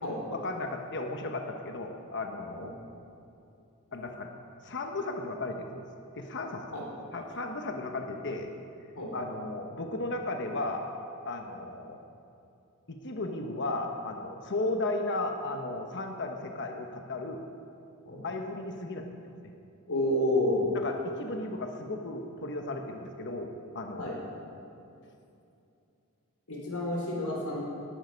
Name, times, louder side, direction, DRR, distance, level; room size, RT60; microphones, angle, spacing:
voice 1, 0.3-2.7 3.9-4.3 4.6-5.8 6.2-6.7 7.1-8.5 9.1-10.9 11.2-12.0 12.9-17.5 18.2-19.2 20.8-24.1, left 2 dB, 55° left, 3 dB, 1.1 m, -35 dB
voice 2, 19.9-20.7 24.0-24.1 26.5-27.6, left 1 dB, 85° left, -3 dB, 4.2 m, -29 dB
18.0 x 11.5 x 5.2 m, 2.7 s
head